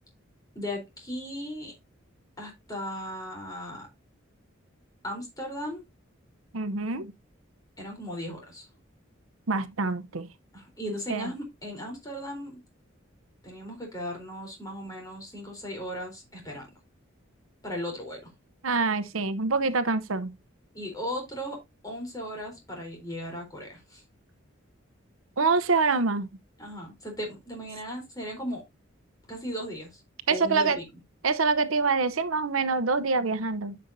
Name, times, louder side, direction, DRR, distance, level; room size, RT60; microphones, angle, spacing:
voice 1, 0.5-1.7 2.4-3.9 5.0-5.8 7.8-8.7 10.5-12.6 13.4-16.7 17.6-18.3 20.7-24.0 26.6-28.6 29.3-30.0 30.3-30.9, equal, 20° left, 4.1 m, -37 dB
voice 2, 6.5-7.1 9.5-10.3 11.1-11.3 18.6-20.3 25.4-26.3 30.3-30.8 31.2-33.8, right 4 dB, 85° right, 0.8 m, -25 dB
10.5 x 6.6 x 2.7 m
head